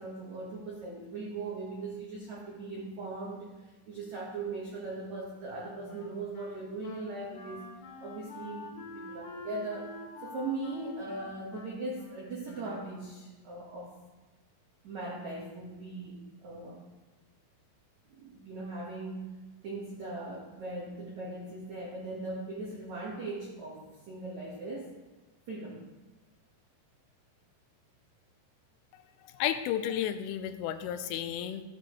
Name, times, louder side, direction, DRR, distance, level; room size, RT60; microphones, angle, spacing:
voice 1, 0.0-7.6 8.0-13.9 14.8-16.2 16.4-16.8 18.0-19.2 19.6-24.9 25.5-25.8, right 2 dB, 80° right, -4 dB, 1.6 m, -39 dB
Wind instrument woodwind instrument, 5.9-13.3, left 3 dB, 55° left, 3.2 m, -47 dB
voice 2, 29.4-31.6, left 10 dB, 85° left, 10 dB, 3.2 m, -32 dB
14.0 x 8.7 x 3.1 m, 1.2 s
omnidirectional pair, 5.7 m